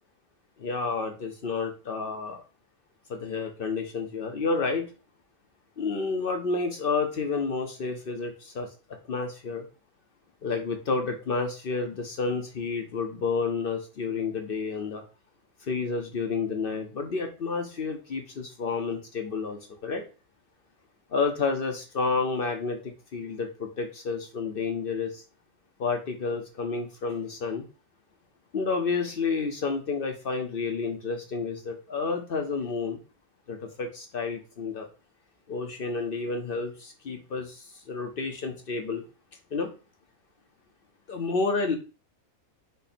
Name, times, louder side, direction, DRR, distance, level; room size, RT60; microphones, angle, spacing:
voice 1, 0.6-2.4 3.1-4.9 5.8-8.7 9.1-9.7 10.4-15.0 15.6-20.0 21.1-25.2 25.8-27.7 28.5-33.0 33.5-34.9 35.5-39.0 39.5-39.7 41.1-41.8, left 4 dB, 55° left, 4 dB, 0.7 m, -30 dB
5.2 x 2.2 x 4.2 m, 0.34 s
omnidirectional pair, 1.4 m